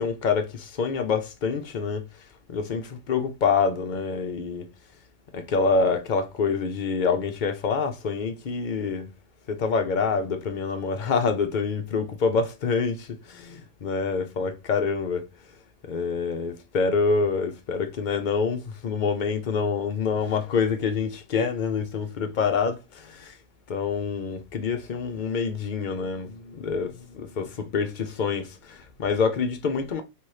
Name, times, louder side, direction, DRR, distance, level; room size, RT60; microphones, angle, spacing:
voice 1, 0.0-2.1 2.5-4.7 5.3-9.1 9.5-15.3 15.9-23.4 23.7-30.0, left 5 dB, 45° left, 0.7 m, -26 dB
3.4 x 3.0 x 4.7 m
omnidirectional pair, 1.3 m